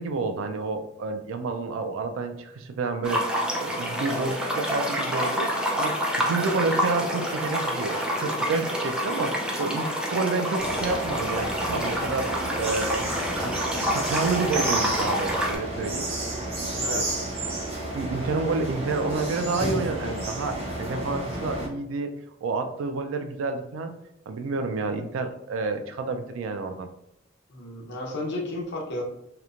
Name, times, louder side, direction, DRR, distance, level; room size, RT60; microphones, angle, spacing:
voice 1, 0.0-5.5 5.8-5.9 6.2-13.0 13.4-13.6 13.9-16.1 16.8-17.1 17.9-22.1 22.4-23.9 24.3-26.9, right 3 dB, 80° right, 7 dB, 0.3 m, -29 dB
sound 1, 3.0-15.6, equal, 5° right, 0.4 m, -28 dB
sound 2, 10.6-21.7, right 1 dB, 30° right, 0.7 m, -31 dB
voice 2, 16.7-17.2 27.5-29.0, left 1 dB, 60° left, -2 dB, 0.7 m, -33 dB
2.9 x 2.1 x 2.4 m, 0.80 s
head